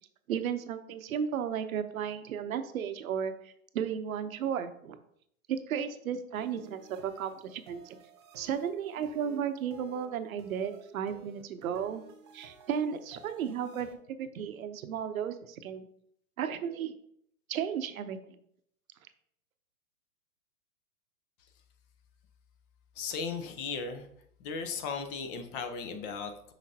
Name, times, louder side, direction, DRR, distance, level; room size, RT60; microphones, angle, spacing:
voice 1, 0.3-5.0 5.5-8.0 8.4-12.0 12.3-15.8 16.4-17.0 17.5-18.4, right 8 dB, 70° right, 9 dB, 0.8 m, -34 dB
sound 1, 6.3-13.9, right 4 dB, 20° right, 0.3 m, -54 dB
voice 2, 22.9-24.1 24.4-26.5, left 5 dB, 35° left, 7 dB, 0.8 m, -36 dB
5.9 x 5.6 x 2.8 m, 0.68 s
hypercardioid pair, 125°, 43 cm